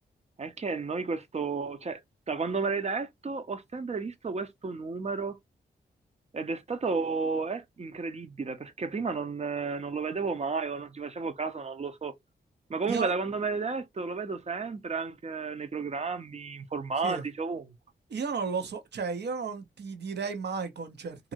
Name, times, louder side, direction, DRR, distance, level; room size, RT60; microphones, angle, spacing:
voice 1, 0.4-2.0 2.3-5.4 6.3-12.1 12.7-17.6, right 4 dB, 40° right, 0.6 m, -32 dB
voice 2, 18.1-21.3, right 5 dB, 70° right, 0.8 m, -33 dB
2.8 x 2.6 x 2.6 m
cardioid pair, 80°, 18 cm